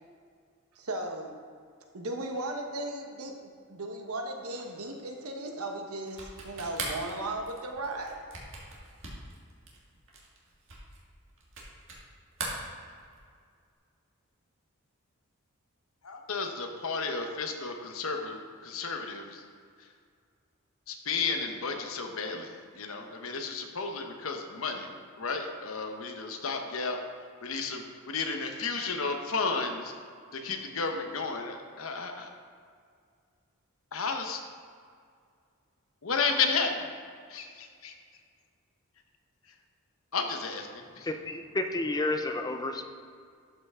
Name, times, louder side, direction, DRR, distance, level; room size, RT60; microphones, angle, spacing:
voice 1, 0.7-1.3 1.9-8.2, right 2 dB, 80° right, 3 dB, 1.1 m, -36 dB
sound 1, 6.1-12.1 12.3-13.3, right 3 dB, 60° right, 1.9 m, -41 dB
voice 2, 16.0-19.4 20.9-22.5 22.8-24.9 25.2-27.0 27.4-29.9 30.3-32.3 33.9-34.4 36.0-36.9 37.3-37.9 40.1-40.7 41.0-41.1, left 4 dB, 65° left, 4 dB, 0.9 m, -32 dB
voice 3, 40.8-42.9, left 2 dB, 15° left, 6 dB, 0.5 m, -31 dB
12.0 x 5.6 x 3.6 m, 2.2 s
head